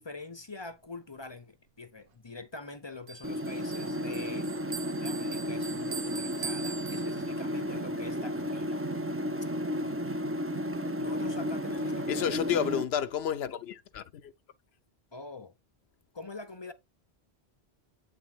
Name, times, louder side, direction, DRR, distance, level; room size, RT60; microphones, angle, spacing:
voice 1, 0.0-8.8 11.0-12.4 15.1-15.5 16.1-16.7, left 3 dB, 30° left, 0.6 m, -44 dB
Bell, 3.1-7.6, right 6 dB, 60° right, 0.9 m, -42 dB
sound 1, 3.2-12.8, equal, 20° right, 0.4 m, -33 dB
voice 2, 12.1-14.3, left 9 dB, 80° left, 0.8 m, -31 dB
8.3 x 3.5 x 4.9 m
omnidirectional pair, 1.1 m